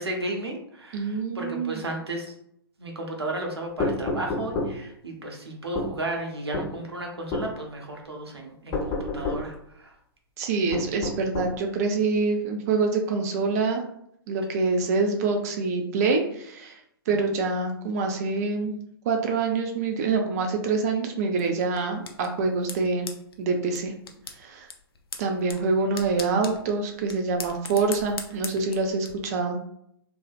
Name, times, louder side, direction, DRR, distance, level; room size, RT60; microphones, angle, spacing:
voice 1, 0.0-2.3 2.8-9.9, right 1 dB, 85° right, 1 dB, 0.7 m, -34 dB
voice 2, 0.9-1.8 10.4-13.8 14.3-16.8 17.1-18.8 19.1-23.1 23.4-23.9 24.4-24.7 25.2-29.6, right 4 dB, 40° right, 3 dB, 0.4 m, -26 dB
sound 1, 3.8-4.7 5.7-5.9 6.5-6.7 7.3-7.5 8.7-9.4 10.7-11.5, left 2 dB, 25° left, 0.9 m, -28 dB
sound 2, 21.4-29.1, left 5 dB, 70° left, 0.4 m, -41 dB
2.5 x 2.0 x 2.4 m, 0.73 s
figure-of-eight pair, 120°, 13 cm